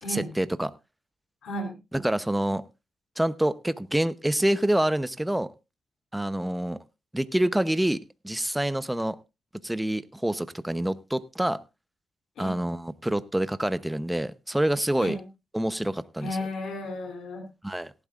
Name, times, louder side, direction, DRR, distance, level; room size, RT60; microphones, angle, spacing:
voice 1, 0.1-0.7 1.9-2.6 3.2-5.5 6.1-6.8 7.1-9.2 9.6-11.6 12.4-15.2 15.5-16.4 17.6-17.9, right 1 dB, 10° right, 0.8 m, -27 dB
voice 2, 1.4-1.8 12.4-12.6 14.9-15.2 16.2-17.5, left 1 dB, 85° left, 3.1 m, -33 dB
18.0 x 12.0 x 2.5 m
cardioid pair, 70°, 0 cm